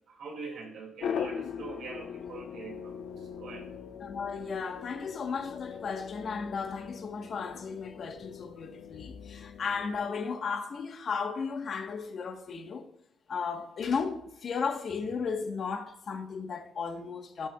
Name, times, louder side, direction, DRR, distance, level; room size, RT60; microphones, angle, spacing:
voice 1, 0.1-3.7, right 4 dB, 75° right, 2.5 m, -43 dB
sound 1, 1.0-10.1, left 7 dB, 70° left, 0.8 m, -40 dB
voice 2, 4.0-12.9 13.3-17.5, left 5 dB, 55° left, 1.3 m, -35 dB
16.5 x 6.0 x 2.4 m
cardioid pair, 90°, 0 cm